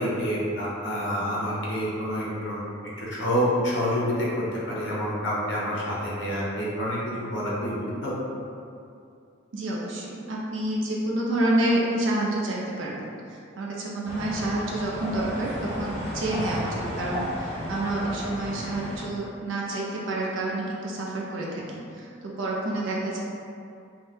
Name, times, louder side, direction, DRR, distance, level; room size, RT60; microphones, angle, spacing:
voice 1, 0.0-2.6 3.0-7.8 8.0-8.1, equal, 65° left, -6 dB, 0.7 m, -27 dB
voice 2, 9.5-13.0 13.3-23.2, right 1 dB, 70° right, -4 dB, 0.4 m, -28 dB
sound 1, 14.0-19.0, equal, 30° right, 1.0 m, -33 dB
2.7 x 2.1 x 3.2 m, 2.5 s
head